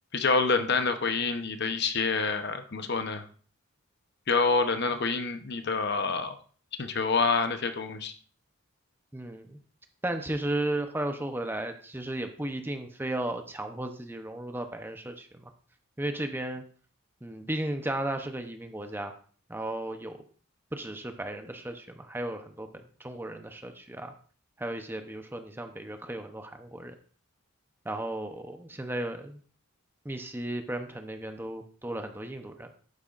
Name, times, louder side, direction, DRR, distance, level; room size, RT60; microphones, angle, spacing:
voice 1, 0.1-3.2 4.3-6.4 6.8-8.1, left 4 dB, 50° left, 8 dB, 0.9 m, -27 dB
voice 2, 9.1-9.6 10.0-15.5 16.0-16.6 17.2-19.1 19.5-20.2 20.7-22.7 23.0-24.1 24.6-26.9 27.8-29.4 30.0-32.7, right 1 dB, 10° right, 6 dB, 0.7 m, -35 dB
11.5 x 9.1 x 2.5 m, 0.43 s
head